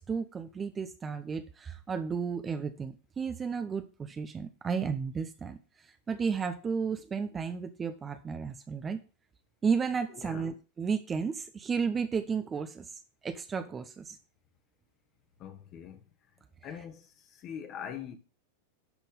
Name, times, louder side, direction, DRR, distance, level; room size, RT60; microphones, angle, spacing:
voice 1, 0.0-5.6 6.1-9.0 9.6-12.9 13.2-14.2, right 5 dB, 20° right, 0.8 m, -33 dB
voice 2, 10.1-10.5 15.4-16.0 16.6-18.2, left 8 dB, 35° left, 1.6 m, -43 dB
12.0 x 4.4 x 5.4 m
figure-of-eight pair, 90°, 0 cm